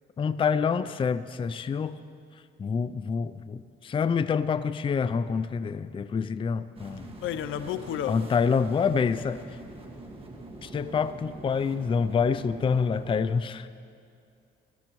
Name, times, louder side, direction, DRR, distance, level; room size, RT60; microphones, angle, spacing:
voice 1, 0.2-2.0 2.6-7.1 8.1-9.4 10.6-13.7, left 6 dB, 25° left, 13 dB, 0.4 m, -27 dB
sound 1, 6.8-13.1, right 2 dB, 30° right, 1.8 m, -44 dB
voice 2, 7.2-8.3, left 10 dB, 80° left, 12 dB, 0.6 m, -31 dB
21.5 x 13.0 x 3.1 m, 2.4 s
cardioid pair, 90°, 20 cm